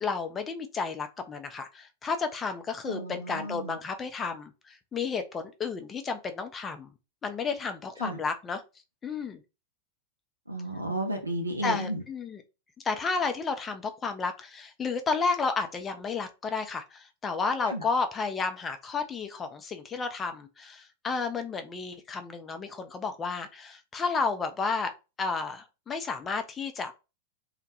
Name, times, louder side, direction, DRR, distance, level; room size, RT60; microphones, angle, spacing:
voice 1, 0.0-6.9 7.2-8.6 9.0-9.4 11.6-12.4 12.8-24.9 25.2-26.9, left 4 dB, 20° left, 0.4 m, -32 dB
voice 2, 2.9-3.8 8.0-8.2 10.5-12.0 17.7-17.8, right 1 dB, 85° right, 0.4 m, -33 dB
2.1 x 2.1 x 2.8 m
figure-of-eight pair, 90°, 0 cm